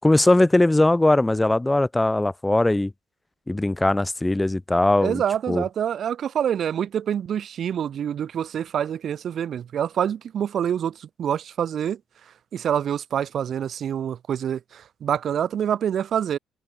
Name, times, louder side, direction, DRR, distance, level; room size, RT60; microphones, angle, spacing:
voice 1, 0.0-2.9 3.5-5.2 5.5-5.6, left 2 dB, 15° left, 6.5 m, -20 dB
voice 2, 5.0-12.0 12.5-16.4, right 9 dB, 60° right, 4.8 m, -26 dB
hypercardioid pair, 55°, 0 cm